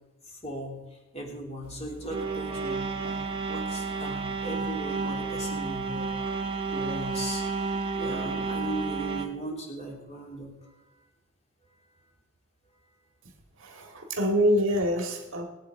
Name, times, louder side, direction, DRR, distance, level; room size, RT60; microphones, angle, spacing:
voice 1, 0.3-0.8 1.1-6.4 6.7-7.6 7.9-10.8 13.7-14.0, right 1 dB, 30° left, -1 dB, 3.2 m, -38 dB
sound 1, 1.6-9.3, right 4 dB, 25° right, 1.5 m, -31 dB
voice 2, 13.6-15.4, equal, 60° right, 2 dB, 2.0 m, -25 dB
22.0 x 8.3 x 4.7 m, 1.1 s
head